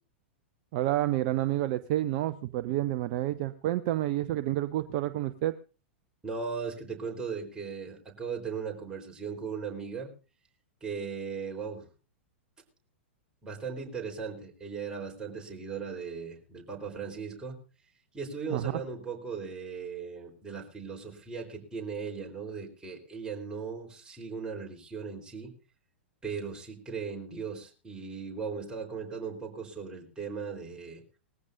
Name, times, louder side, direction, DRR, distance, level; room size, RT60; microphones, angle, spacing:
voice 1, 0.7-5.5 18.5-18.8, right 14 dB, 40° right, 12 dB, 0.7 m, -29 dB
voice 2, 6.2-10.1 10.8-11.9 13.4-17.6 18.1-25.5 26.2-31.0, right 5 dB, 10° right, 0 dB, 3.9 m, -38 dB
20.0 x 15.0 x 2.6 m, 0.35 s
figure-of-eight pair, 100°, 6 cm